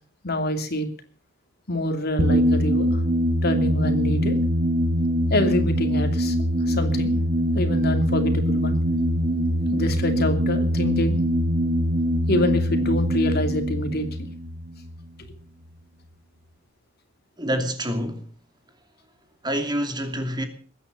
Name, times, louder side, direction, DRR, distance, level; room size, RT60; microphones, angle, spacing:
voice 1, 0.2-0.9 1.7-3.0 3.4-4.4 5.3-6.4 6.7-7.1 7.5-8.8 9.7-11.2 12.3-14.3, left 1 dB, 55° left, 2.8 m, -26 dB
sound 1, 2.2-15.4, equal, 45° right, 3.1 m, -23 dB
voice 2, 17.4-18.2 19.4-20.5, equal, 20° right, 2.6 m, -27 dB
21.5 x 9.6 x 6.9 m
head